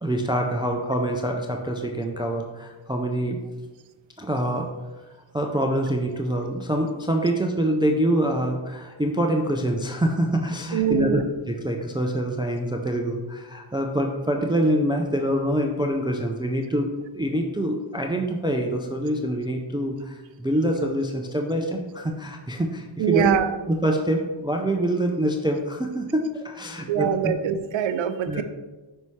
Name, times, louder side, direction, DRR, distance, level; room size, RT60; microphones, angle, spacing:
voice 1, 0.0-3.4 4.2-4.7 5.3-11.2 11.5-23.4 23.7-27.3 28.3-28.4, right 1 dB, 10° right, 2 dB, 0.3 m, -25 dB
voice 2, 10.7-11.2 23.0-23.5 26.9-28.4, right 9 dB, 65° right, 11 dB, 0.5 m, -23 dB
5.5 x 5.5 x 3.1 m, 1.2 s
wide cardioid pair, 115°, 50 cm